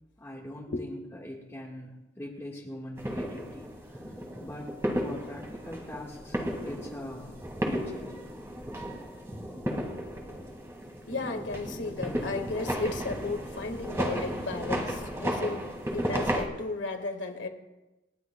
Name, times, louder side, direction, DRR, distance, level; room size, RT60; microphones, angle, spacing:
voice 1, 0.2-4.0 4.4-8.3, left 1 dB, 15° left, -3 dB, 1.5 m, -42 dB
sound 1, 3.0-16.4, equal, 15° right, 1.9 m, -34 dB
voice 2, 11.1-17.5, left 3 dB, 75° left, 5 dB, 1.7 m, -34 dB
29.0 x 11.0 x 2.2 m, 1.0 s
head